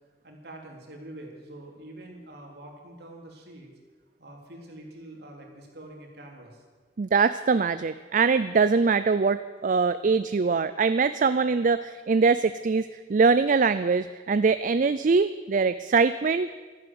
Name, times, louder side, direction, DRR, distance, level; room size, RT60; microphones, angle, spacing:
voice 1, 0.2-3.7 4.2-6.6, right 1 dB, 65° right, 0 dB, 3.7 m, -45 dB
voice 2, 7.0-16.6, right 4 dB, 45° right, 12 dB, 0.4 m, -23 dB
13.5 x 11.0 x 9.5 m, 1.4 s
head